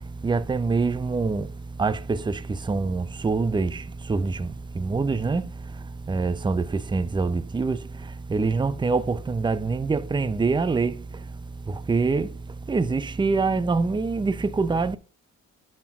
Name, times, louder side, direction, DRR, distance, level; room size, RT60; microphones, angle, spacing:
voice 1, 0.2-1.5 1.8-5.5 6.1-11.0 11.7-12.3 12.7-15.0, right 4 dB, 15° right, 0.5 m, -25 dB
10.0 x 4.4 x 3.5 m
cardioid pair, 90°, 30 cm